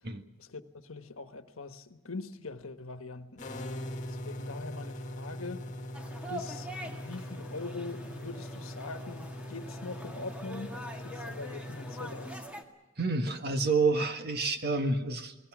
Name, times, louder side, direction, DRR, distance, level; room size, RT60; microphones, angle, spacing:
voice 1, 0.4-3.4 4.1-5.7 6.3-10.7 11.0-12.4, left 3 dB, 70° left, 1.4 m, -42 dB
sound 1, 3.4-12.4, left 1 dB, 35° left, 2.2 m, -41 dB
sound 2, 5.9-12.6, equal, 5° right, 1.9 m, -45 dB
voice 2, 13.0-15.5, right 3 dB, 50° right, 1.7 m, -29 dB
29.0 x 19.5 x 6.2 m
head